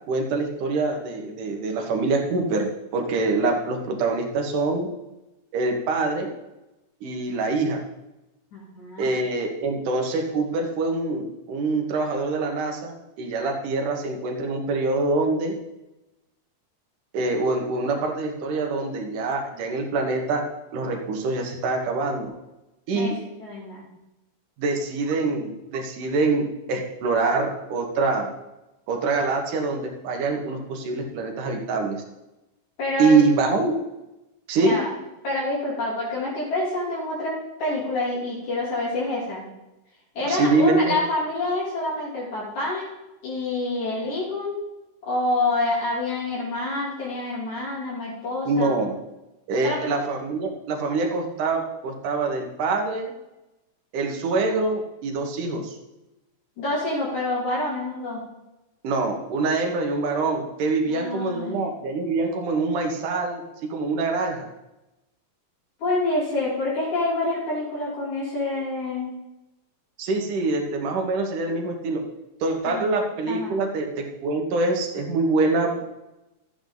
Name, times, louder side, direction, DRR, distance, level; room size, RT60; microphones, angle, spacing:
voice 1, 0.1-4.9 5.5-6.3 7.0-7.8 9.0-15.5 17.1-20.4 20.7-22.3 22.9-23.1 24.6-28.3 28.9-32.0 33.0-33.8 34.5-34.8 40.2-41.0 48.5-49.0 49.5-53.1 53.9-55.8 58.8-64.5 70.0-72.0 72.4-75.8, right 3 dB, 85° right, 2 dB, 3.0 m, -25 dB
voice 2, 8.5-9.2 22.9-23.1 23.4-23.8 32.8-33.2 34.6-34.9 35.2-39.4 40.1-42.8 43.2-44.6 45.0-48.8 49.6-49.9 56.6-58.2 60.9-61.6 65.8-69.1 72.7-72.9 73.3-73.6, left 2 dB, 65° left, -6 dB, 4.7 m, -27 dB
13.0 x 9.0 x 3.9 m, 0.96 s
omnidirectional pair, 3.6 m